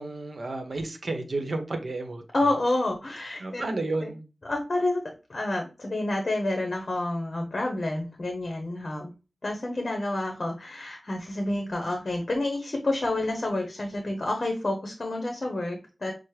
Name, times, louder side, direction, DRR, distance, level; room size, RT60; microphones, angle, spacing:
voice 1, 0.0-2.2 3.4-4.2, right 2 dB, 65° right, 0.8 m, -31 dB
voice 2, 2.3-3.7 4.5-5.0 5.3-9.1 9.4-16.1, left 2 dB, 50° left, 0.8 m, -29 dB
6.0 x 2.0 x 3.2 m
wide cardioid pair, 85°, 0 cm